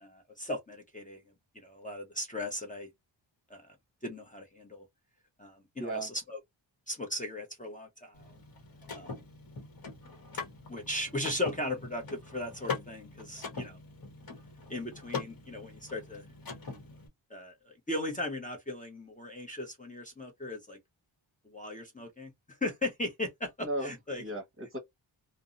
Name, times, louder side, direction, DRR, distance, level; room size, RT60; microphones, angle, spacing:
voice 1, 0.0-1.2 1.5-2.9 3.5-3.6 4.0-4.9 5.4-6.4 6.9-8.3 8.9-9.1 10.7-13.8 14.7-16.2 17.3-20.8 21.5-22.3 22.6-24.2, left 1 dB, 15° left, 0.7 m, -37 dB
voice 2, 5.8-6.1 23.6-24.8, right 1 dB, 30° right, 1.0 m, -36 dB
Car / Mechanisms, 8.1-17.1, left 4 dB, 50° left, 1.0 m, -42 dB
2.6 x 2.0 x 2.4 m
wide cardioid pair, 85°, 47 cm